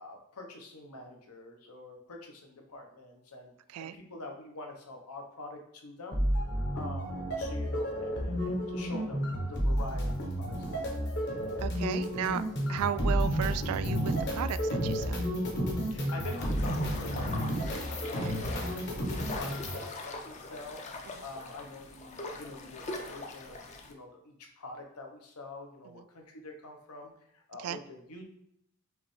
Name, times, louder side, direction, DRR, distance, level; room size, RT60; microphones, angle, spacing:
voice 1, 0.0-6.2 6.7-11.1 15.9-19.0 19.3-20.8 21.2-28.2, left 2 dB, 85° left, 2 dB, 0.9 m, -46 dB
sound 1, 6.1-19.8, equal, 50° left, 1.0 m, -31 dB
voice 2, 11.6-12.4 12.7-15.2 18.2-18.3 25.9-26.0 27.6-27.8, right 10 dB, 80° right, 16 dB, 0.3 m, -34 dB
sound 2, 16.2-23.9, left 3 dB, 30° left, 0.4 m, -42 dB
4.9 x 3.1 x 3.2 m, 0.74 s
head